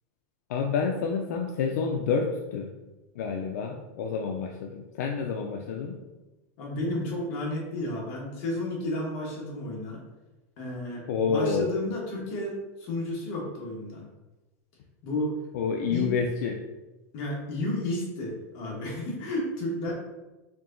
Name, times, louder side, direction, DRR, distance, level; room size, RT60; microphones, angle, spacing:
voice 1, 0.5-2.7 3.2-6.0 11.1-11.7 15.5-16.6, left 5 dB, 75° left, 2 dB, 0.4 m, -28 dB
voice 2, 6.6-10.0 10.6-14.0 15.0-15.3 15.9-16.1 17.1-19.9, left 1 dB, 45° left, -2 dB, 1.2 m, -32 dB
4.5 x 2.8 x 2.6 m, 1.1 s
supercardioid pair, 165°, 9 cm